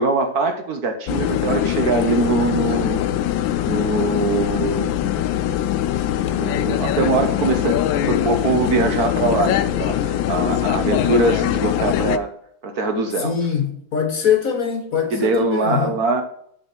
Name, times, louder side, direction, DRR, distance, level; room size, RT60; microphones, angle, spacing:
voice 1, 0.0-3.0 3.6-5.0 6.3-12.3 12.6-13.3 15.1-16.2, right 3 dB, 60° right, 1.4 m, -22 dB
sound 1, 1.1-12.2, left 11 dB, 90° left, 1.3 m, -22 dB
voice 2, 13.2-16.0, left 8 dB, 50° left, 1.4 m, -22 dB
10.0 x 4.2 x 6.0 m
omnidirectional pair, 2.1 m